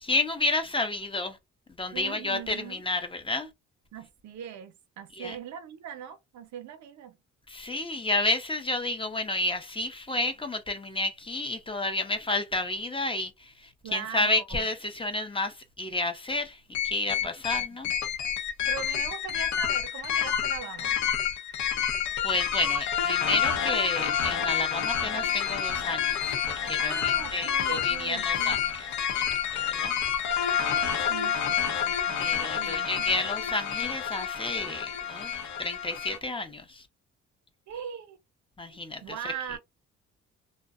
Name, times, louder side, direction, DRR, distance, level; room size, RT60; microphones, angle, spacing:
voice 1, 0.0-1.4 1.8-3.5 5.1-5.4 7.5-17.9 22.2-26.3 26.6-28.6 29.1-29.2 29.5-29.9 32.2-36.8 38.6-39.2, left 2 dB, 15° left, 0.6 m, -31 dB
voice 2, 1.9-2.8 3.9-7.2 13.8-14.7 17.2-17.3 18.7-21.0 26.8-28.6 30.6-33.1 33.4-33.6 37.7-38.2 38.7-39.6, right 9 dB, 70° right, 0.7 m, -41 dB
sound 1, 16.7-36.2, left 8 dB, 75° left, 0.7 m, -29 dB
2.6 x 2.1 x 2.4 m
cardioid pair, 90°, 30 cm